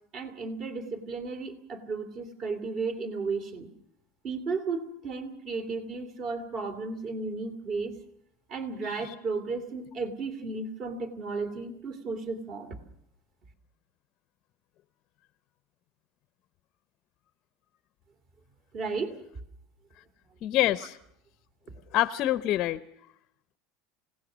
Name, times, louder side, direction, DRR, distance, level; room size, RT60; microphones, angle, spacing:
voice 1, 0.1-3.7 4.2-8.0 8.5-12.8 18.7-19.2, right 4 dB, 35° right, 10 dB, 2.6 m, -34 dB
voice 2, 8.8-9.1 20.4-21.0 21.9-22.8, left 14 dB, 40° left, 13 dB, 0.7 m, -26 dB
27.5 x 17.5 x 6.2 m, 0.75 s
supercardioid pair, 165°, 0 cm